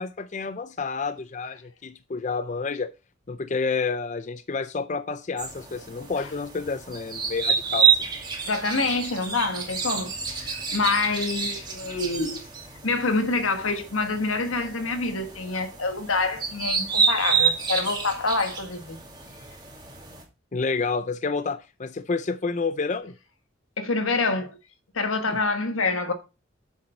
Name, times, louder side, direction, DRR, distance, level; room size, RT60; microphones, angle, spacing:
voice 1, 0.0-2.9 3.3-8.0 20.5-23.1 25.3-25.4, left 4 dB, 35° left, 0.5 m, -29 dB
sound 1, 5.4-20.2, right 6 dB, 20° right, 2.3 m, -28 dB
voice 2, 8.4-12.4 12.8-19.0 23.8-24.6 24.9-26.1, left 3 dB, 90° left, 1.4 m, -26 dB
7.3 x 6.6 x 4.3 m
head